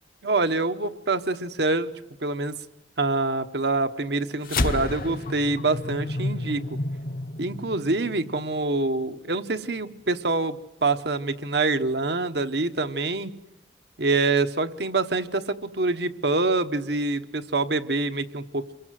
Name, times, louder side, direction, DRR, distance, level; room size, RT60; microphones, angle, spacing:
voice 1, 0.2-1.9 2.2-2.6 3.0-6.8 7.4-13.3 14.0-18.7, right 3 dB, 65° right, 9 dB, 1.2 m, -26 dB
sound 1, 4.4-9.1, left 2 dB, 50° left, 0.9 m, -30 dB
28.0 x 23.0 x 7.7 m, 0.84 s
head